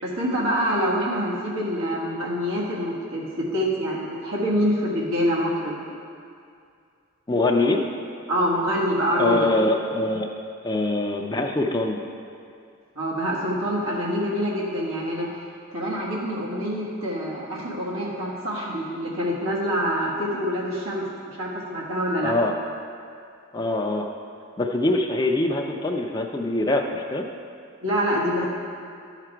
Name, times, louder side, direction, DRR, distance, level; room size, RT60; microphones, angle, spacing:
voice 1, 0.0-5.8 8.3-9.5 12.9-15.3 15.7-22.3 27.8-28.5, equal, 85° right, -5 dB, 1.5 m, -26 dB
voice 2, 7.3-7.8 9.2-10.3 10.6-12.0 22.2-22.5 23.5-24.0 24.6-27.3, left 2 dB, 20° left, 1 dB, 0.4 m, -23 dB
11.5 x 4.9 x 4.5 m, 2.4 s
head